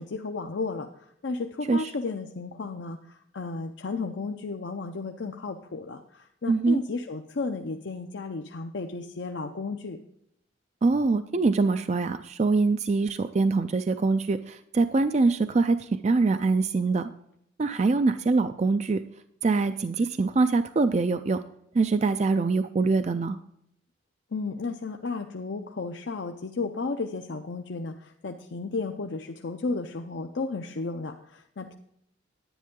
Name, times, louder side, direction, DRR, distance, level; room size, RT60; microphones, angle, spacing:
voice 1, 0.0-10.0 24.3-31.7, left 3 dB, 70° left, 4 dB, 0.6 m, -33 dB
voice 2, 6.5-6.8 10.8-17.1 17.6-19.0 19.4-21.4 21.7-23.4, right 3 dB, 35° right, 10 dB, 0.4 m, -24 dB
10.0 x 10.0 x 3.7 m, 0.74 s
head